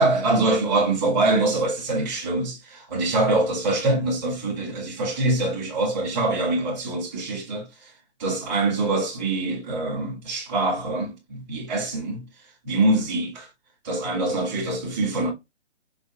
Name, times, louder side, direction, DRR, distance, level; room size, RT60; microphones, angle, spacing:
voice 1, 0.0-7.9 8.2-12.2 12.6-13.5 13.8-15.3, right 2 dB, 10° right, 1.0 m, -24 dB
5.2 x 2.6 x 2.5 m
hypercardioid pair, 170°, 35 cm